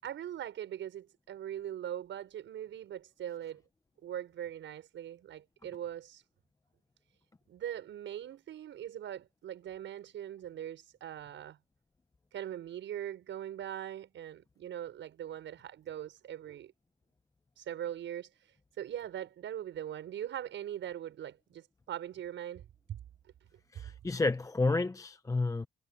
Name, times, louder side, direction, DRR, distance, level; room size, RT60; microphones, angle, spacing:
voice 1, 0.0-3.6 4.0-6.2 7.5-11.6 12.3-16.7 17.6-23.0, right 11 dB, 70° right, 6.3 m, -41 dB
voice 2, 23.7-25.7, left 3 dB, 15° left, 0.7 m, -30 dB
cardioid pair, 90°, 20 cm